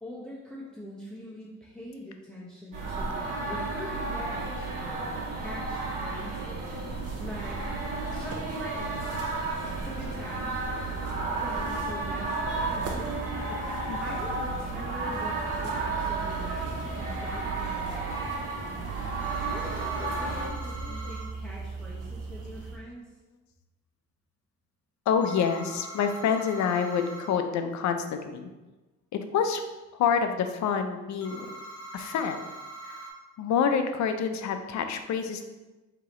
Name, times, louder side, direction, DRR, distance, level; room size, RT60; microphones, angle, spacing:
voice 1, 0.0-6.7 7.2-7.7 8.1-9.1 9.5-10.7 11.4-13.4 14.0-18.2 19.4-23.1, equal, 5° left, -6 dB, 0.8 m, -43 dB
sound 1, 2.7-20.5, right 3 dB, 90° right, 1.1 m, -32 dB
sound 2, 6.6-22.8, right 3 dB, 55° right, 0.7 m, -40 dB
sound 3, 19.2-21.3 25.2-27.3 31.2-33.1, right 2 dB, 50° left, 1.1 m, -43 dB
voice 2, 20.0-21.1 21.4-21.5 25.1-28.5 29.1-29.6 29.9-31.5 31.9-32.4 32.8-33.1 33.4-35.4, left 6 dB, 70° left, 7 dB, 0.5 m, -28 dB
4.7 x 2.9 x 3.0 m, 1.1 s
cardioid pair, 90°, 30 cm